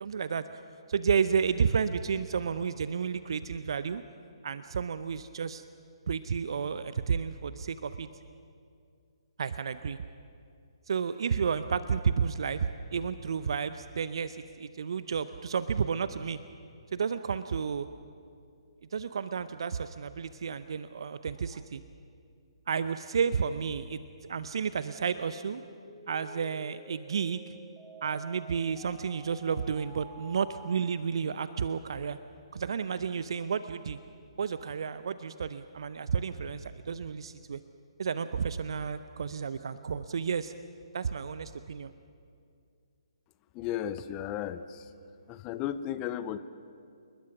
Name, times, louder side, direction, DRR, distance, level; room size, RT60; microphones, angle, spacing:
voice 1, 0.0-0.4 0.9-4.0 4.4-5.6 6.1-8.1 9.4-10.0 10.9-16.4 16.9-17.9 18.9-21.8 22.7-24.0 24.3-25.6 26.1-27.4 28.0-32.2 32.5-34.0 34.4-37.6 38.0-40.5 40.9-41.9, right 6 dB, 55° right, 12 dB, 0.7 m, -31 dB
sound 1, 24.8-30.8, right 2 dB, 20° right, 4.8 m, -51 dB
voice 2, 43.5-44.9 45.3-46.4, left 10 dB, 25° left, 13 dB, 0.8 m, -34 dB
29.0 x 20.5 x 6.0 m, 2.4 s
figure-of-eight pair, 135°, 3 cm